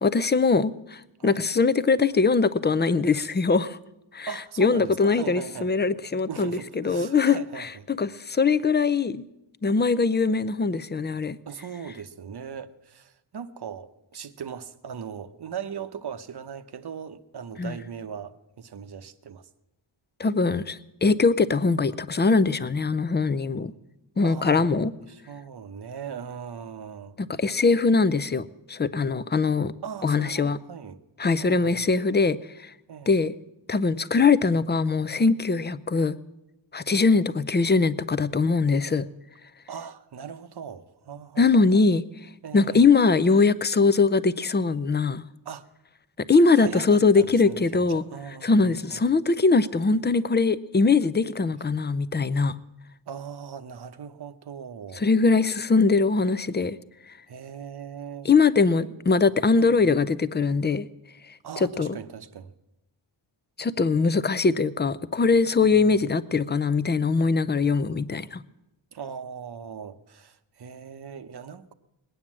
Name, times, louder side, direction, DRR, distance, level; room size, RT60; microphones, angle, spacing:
voice 1, 0.0-3.8 4.1-4.3 4.6-9.2 9.6-11.4 17.6-17.7 20.2-23.7 24.2-24.9 27.2-29.7 30.0-30.6 31.2-32.7 33.1-33.3 33.7-36.2 36.7-39.0 41.4-42.0 42.5-45.2 46.3-48.0 48.4-52.6 55.0-56.8 58.2-60.9 61.6-62.0 63.6-68.4, left 4 dB, 25° left, 0.4 m, -22 dB
voice 2, 4.3-5.7 6.3-7.9 11.5-19.5 24.2-24.6 25.0-27.2 29.8-31.0 31.2-31.9 32.9-33.2 39.7-41.8 42.4-42.8 45.4-45.6 46.6-49.0 53.1-55.1 57.3-58.3 58.8-58.9 59.6-59.9 61.4-62.5 65.6-65.9 68.9-71.7, right 7 dB, 55° right, 0.8 m, -39 dB
20.5 x 9.3 x 7.4 m
wide cardioid pair, 135°, 48 cm